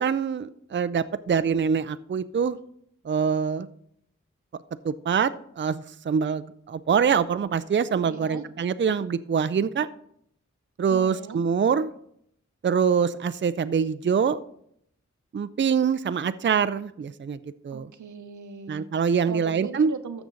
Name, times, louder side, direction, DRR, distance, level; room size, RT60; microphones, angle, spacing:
voice 1, 0.0-2.6 3.0-3.7 4.8-9.9 10.8-11.9 12.6-14.4 15.3-17.9 18.7-19.9, right 6 dB, 40° right, 13 dB, 0.5 m, -24 dB
voice 2, 8.1-8.5 10.9-11.4 17.7-18.9 19.3-20.3, right 6 dB, 85° right, 9 dB, 0.9 m, -38 dB
13.0 x 7.1 x 3.9 m, 0.71 s
cardioid pair, 40°, 29 cm